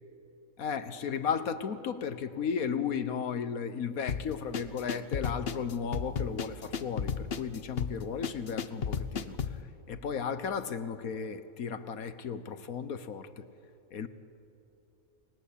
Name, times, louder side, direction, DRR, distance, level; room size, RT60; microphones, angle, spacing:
voice 1, 0.6-9.6 9.9-13.5 13.9-14.1, left 6 dB, 75° left, 12 dB, 1.6 m, -35 dB
sound 1, 4.1-9.6, left 6 dB, 45° left, 1.1 m, -34 dB
29.5 x 20.0 x 8.6 m, 2.9 s
omnidirectional pair, 1.5 m